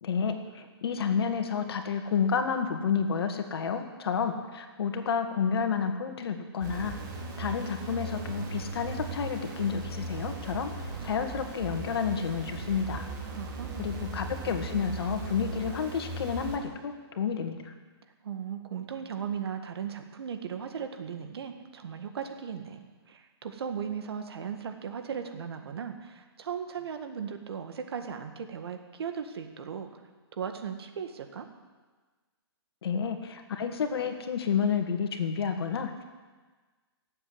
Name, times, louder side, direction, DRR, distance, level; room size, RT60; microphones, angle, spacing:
voice 1, 0.0-6.9 7.4-13.1 13.8-17.7 32.8-36.0, left 6 dB, 65° left, 6 dB, 1.9 m, -30 dB
sound 1, 6.6-16.6, right 3 dB, 45° right, 3.3 m, -38 dB
voice 2, 13.3-13.9 18.2-29.9 30.3-31.5, right 7 dB, 70° right, 6 dB, 1.8 m, -37 dB
17.5 x 7.8 x 8.0 m, 1.4 s
hypercardioid pair, 150°, 14 cm